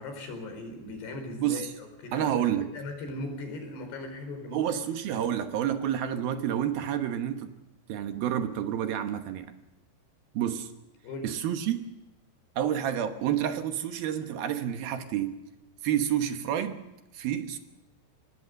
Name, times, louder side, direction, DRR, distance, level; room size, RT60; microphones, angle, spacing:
voice 1, 0.0-4.6 11.0-11.3, left 2 dB, 70° left, 5 dB, 6.6 m, -39 dB
voice 2, 1.4-1.7 2.1-2.7 4.5-7.5 7.9-9.5 10.3-10.7 11.2-11.8 12.6-15.4 15.8-16.8 17.1-17.6, right 10 dB, 70° right, 8 dB, 2.7 m, -29 dB
25.5 x 19.5 x 6.5 m, 0.96 s
omnidirectional pair, 5.0 m